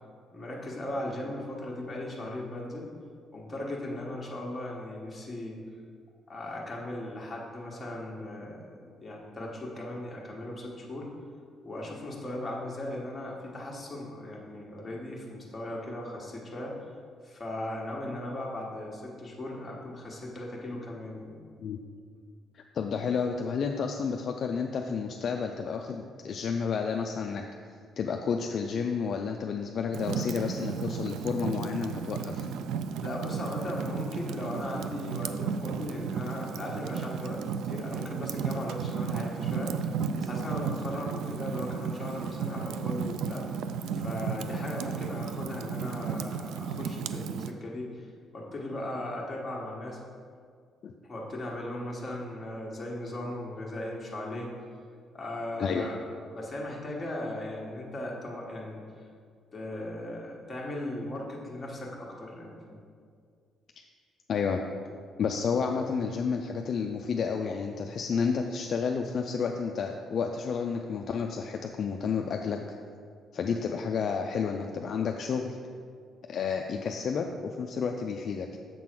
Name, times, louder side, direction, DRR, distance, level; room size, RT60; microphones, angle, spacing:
voice 1, 0.3-2.9 3.3-5.6 6.3-11.1 11.6-16.8 17.2-21.4 33.0-37.4 37.6-43.4 43.9-50.0 51.0-54.5 55.1-56.0 56.3-59.1 59.5-62.8, left 1 dB, 15° left, -4 dB, 1.2 m, -37 dB
voice 2, 22.5-27.4 28.0-32.5 50.8-50.9 55.6-55.9 64.3-64.6 65.2-72.6 73.3-75.6 76.3-78.6, left 6 dB, 45° left, 3 dB, 0.3 m, -31 dB
Fire, 29.9-47.5, right 6 dB, 85° right, 0.3 m, -34 dB
7.4 x 3.8 x 6.0 m, 2.1 s
cardioid pair, 160°, 0 cm